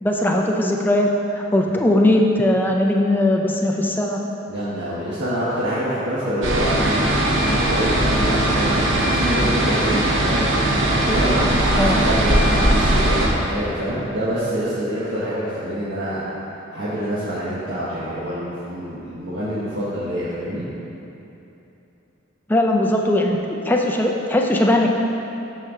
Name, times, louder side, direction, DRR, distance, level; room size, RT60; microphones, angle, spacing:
voice 1, 0.0-4.2 11.1-11.2 11.8-12.0 22.5-24.9, left 1 dB, 10° left, 0 dB, 0.5 m, -19 dB
voice 2, 4.5-16.2 16.7-20.7, equal, 60° right, -10 dB, 1.3 m, -26 dB
sound 1, 6.4-13.3, right 1 dB, 75° right, 1.1 m, -19 dB
13.0 x 4.5 x 3.7 m, 2.9 s
head